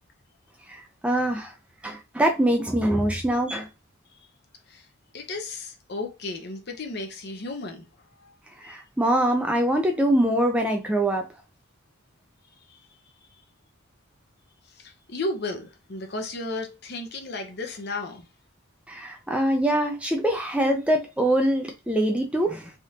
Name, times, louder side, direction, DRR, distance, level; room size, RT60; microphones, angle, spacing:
voice 1, 0.7-1.5 1.8-3.7 8.6-11.2 18.9-22.7, right 1 dB, 5° right, 0.4 m, -24 dB
voice 2, 5.1-7.9 8.2-8.3 8.6-8.8 12.7-12.8 13.3-13.4 14.8-18.3, left 2 dB, 50° left, 0.7 m, -34 dB
3.5 x 2.5 x 2.8 m
head